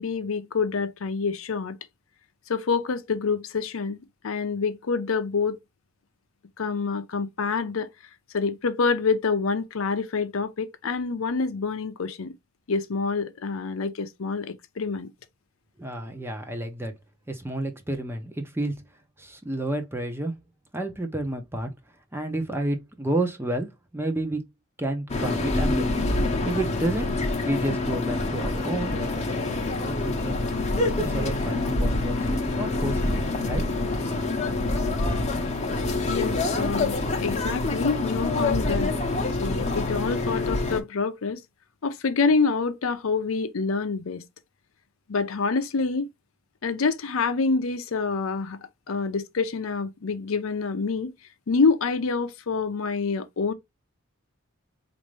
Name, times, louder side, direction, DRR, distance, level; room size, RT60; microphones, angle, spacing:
voice 1, 0.0-1.8 2.5-4.0 4.2-5.6 6.6-7.9 8.3-12.3 12.7-15.1 36.1-38.9 39.4-41.4 41.8-44.2 45.1-46.1 46.6-48.6 48.9-51.1 51.5-53.5, left 4 dB, 75° left, 0.6 m, -27 dB
voice 2, 15.8-16.9 17.3-18.8 19.2-20.4 20.7-21.7 22.1-24.4 24.8-25.9 26.4-27.1 27.4-29.3 29.7-30.4 31.0-33.7, right 1 dB, 10° right, 0.7 m, -30 dB
sound 1, 25.1-40.8, left 2 dB, 30° left, 0.8 m, -26 dB
4.2 x 2.6 x 3.1 m
head